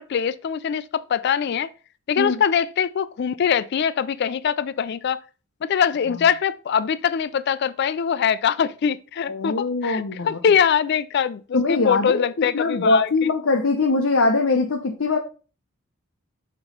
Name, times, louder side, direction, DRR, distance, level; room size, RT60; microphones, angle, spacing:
voice 1, 0.0-1.7 2.1-5.2 5.6-13.3, left 7 dB, 50° left, 0.3 m, -23 dB
voice 2, 9.3-10.4 11.5-15.2, left 3 dB, 65° left, 0.7 m, -22 dB
6.1 x 3.0 x 5.2 m
head